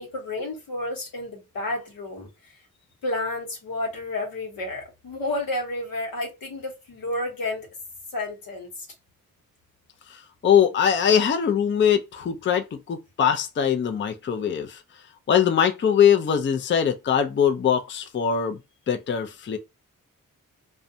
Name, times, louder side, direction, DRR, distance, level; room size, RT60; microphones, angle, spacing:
voice 1, 0.0-2.5 3.0-7.7 8.1-8.9, left 2 dB, 80° left, 1.0 m, -31 dB
voice 2, 10.1-14.8 15.3-18.6 18.9-19.6, left 8 dB, 35° left, 0.4 m, -22 dB
2.4 x 2.2 x 2.6 m
cardioid pair, 50°, 35 cm